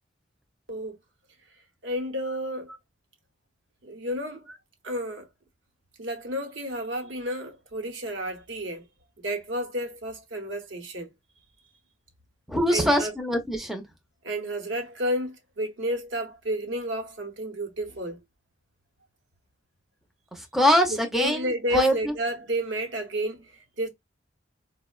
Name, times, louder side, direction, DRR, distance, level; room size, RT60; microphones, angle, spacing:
voice 1, 1.8-2.7 3.8-4.5 4.8-5.3 6.0-8.8 9.2-11.1 12.7-13.1 14.2-18.2 20.9-23.9, equal, 75° right, 0.8 m, -31 dB
voice 2, 12.5-13.8 20.3-22.1, equal, ahead, 0.4 m, -23 dB
4.2 x 2.0 x 2.2 m
head